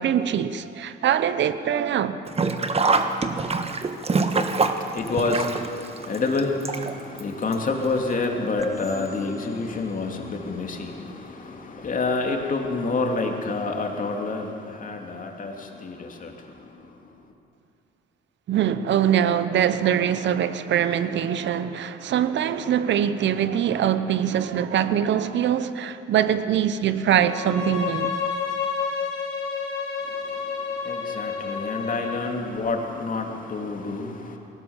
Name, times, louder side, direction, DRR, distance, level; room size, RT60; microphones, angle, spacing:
voice 1, 0.0-2.2 18.5-28.1, right 9 dB, 65° right, 0.9 m, -23 dB
Sink (filling or washing), 2.3-7.2 7.5-7.6 8.6-8.7 9.0-9.1, right 4 dB, 30° right, 1.4 m, -24 dB
voice 2, 4.3-17.2 30.0-34.4, left 3 dB, 40° left, 2.9 m, -29 dB
sound 1, 8.6-12.1, left 4 dB, 15° left, 0.8 m, -38 dB
Bowed string instrument, 27.2-32.3, left 5 dB, 80° left, 4.3 m, -30 dB
21.0 x 18.0 x 7.3 m
cardioid pair, 90°, 20 cm